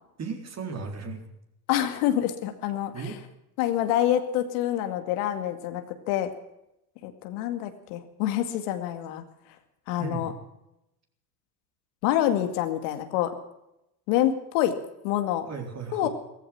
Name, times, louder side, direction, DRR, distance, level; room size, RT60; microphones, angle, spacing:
voice 1, 0.2-1.2 2.9-3.1 10.0-10.3 15.5-16.1, right 5 dB, 35° right, 4 dB, 4.0 m, -35 dB
voice 2, 1.7-3.2 3.6-6.3 7.0-9.2 9.9-10.3 12.0-13.3 14.1-14.8 15.0-15.5 15.9-16.1, left 12 dB, 70° left, 8 dB, 2.3 m, -26 dB
16.0 x 14.5 x 6.0 m, 0.86 s
hypercardioid pair, 95°, 48 cm